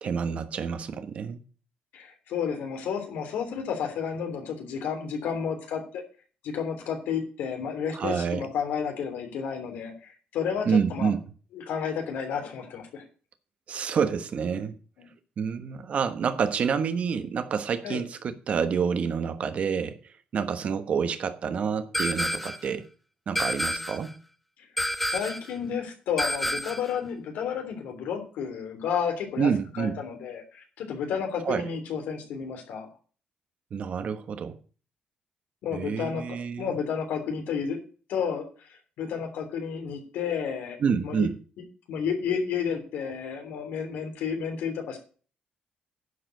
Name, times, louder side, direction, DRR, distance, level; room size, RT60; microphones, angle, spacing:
voice 1, 0.0-1.4 7.9-8.5 10.7-11.2 13.7-14.7 15.4-20.0 20.3-22.9 23.3-24.1 29.4-29.9 31.4-31.6 33.7-34.6 35.7-36.7 40.8-41.3, right 6 dB, 50° right, 1.2 m, -28 dB
voice 2, 1.9-6.0 6.4-11.1 11.5-13.0 15.0-15.1 17.8-18.0 25.1-29.5 29.8-32.9 35.6-36.2 36.6-37.8 38.1-41.3 41.9-45.0, left 7 dB, 90° left, 3.2 m, -31 dB
sound 1, 21.9-22.7 23.4-24.1 24.8-25.5 26.2-26.9, equal, 5° left, 0.6 m, -29 dB
11.0 x 5.0 x 7.8 m
cardioid pair, 135°, 3 cm